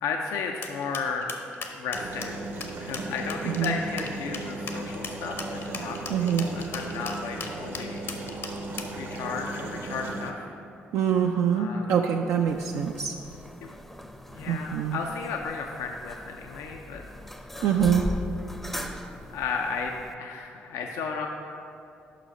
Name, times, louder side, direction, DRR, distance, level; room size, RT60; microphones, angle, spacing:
voice 1, 0.0-1.4 1.7-2.4 2.8-6.0 6.4-8.4 9.0-10.5 11.5-11.9 13.6-13.7 14.3-17.0 17.5-17.7 19.3-21.3, left 5 dB, 75° left, 2 dB, 0.4 m, -34 dB
sound 1, 0.6-9.0, left 5 dB, 55° left, 0.7 m, -38 dB
sound 2, 1.9-10.3, right 2 dB, 55° right, 0.7 m, -36 dB
voice 2, 6.1-6.5 10.9-13.1 14.5-15.0 17.6-18.1, right 8 dB, 70° right, 2 dB, 0.3 m, -24 dB
sound 3, 12.5-20.1, left 1 dB, 5° left, 0.5 m, -39 dB
5.6 x 5.0 x 5.4 m, 2.6 s
hypercardioid pair, 55°, 5 cm